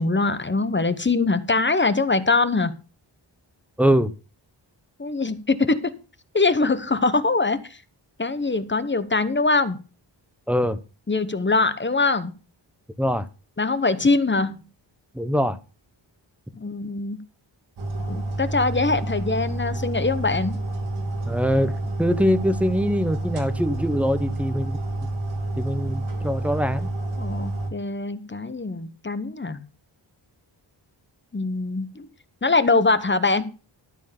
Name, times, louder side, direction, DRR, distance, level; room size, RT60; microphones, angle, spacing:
voice 1, 0.0-2.7 5.0-5.9 6.3-7.8 8.2-9.8 11.1-12.3 13.6-14.6 16.6-17.2 18.1-20.6 27.2-29.7 31.3-32.1 32.4-33.5, left 3 dB, 25° left, 0.9 m, -23 dB
voice 2, 3.8-4.1 10.5-10.8 13.0-13.3 15.1-15.6 21.2-21.7 22.0-24.7 25.6-26.9, equal, 5° right, 0.8 m, -23 dB
sound 1, 17.8-27.7, right 2 dB, 85° right, 2.9 m, -29 dB
13.0 x 4.6 x 7.0 m
wide cardioid pair, 110°, 47 cm